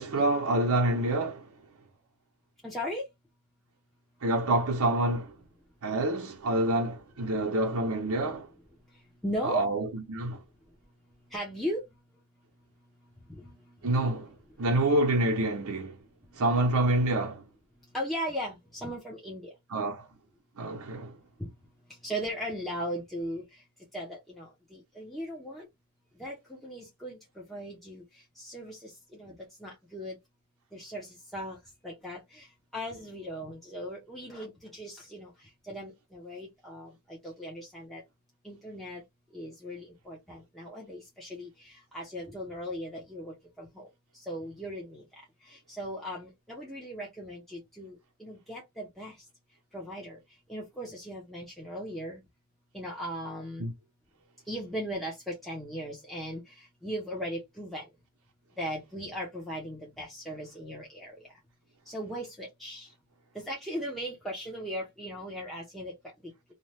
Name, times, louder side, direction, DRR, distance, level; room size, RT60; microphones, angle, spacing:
voice 1, 0.0-1.5 4.2-5.3 5.8-8.5 9.4-10.4 13.8-14.3 14.6-16.0 16.3-17.4 19.7-20.0 20.6-21.1 53.6-53.7, right 1 dB, 80° right, 0.8 m, -27 dB
voice 2, 2.6-3.0 9.2-9.7 11.3-11.8 13.3-13.6 13.8-13.9 17.9-19.5 21.4-21.5 22.0-23.4 23.9-25.7 26.2-27.2 27.5-28.0 28.4-30.1 30.7-31.6 31.8-32.5 32.7-35.3 35.7-38.0 38.4-39.0 39.3-43.9 44.1-45.0 45.5-49.1 49.7-50.2 50.5-52.2 52.7-53.7 54.5-56.4 56.8-57.9 58.6-61.2 61.9-62.9 63.3-65.9, equal, ahead, 0.7 m, -38 dB
2.7 x 2.2 x 3.2 m
head